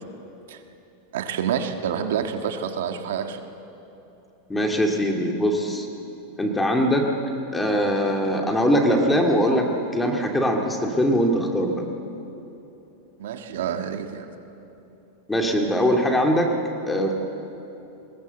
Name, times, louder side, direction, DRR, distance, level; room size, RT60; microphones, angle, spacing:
voice 1, 1.1-3.4 13.2-14.3, right 8 dB, 80° right, 6 dB, 1.6 m, -28 dB
voice 2, 4.5-5.9 6.4-7.1 7.5-9.7 9.9-11.8 15.3-16.5 16.9-17.1, equal, 10° left, 2 dB, 2.2 m, -21 dB
21.5 x 18.0 x 8.1 m, 2.9 s
supercardioid pair, 145°, 0 cm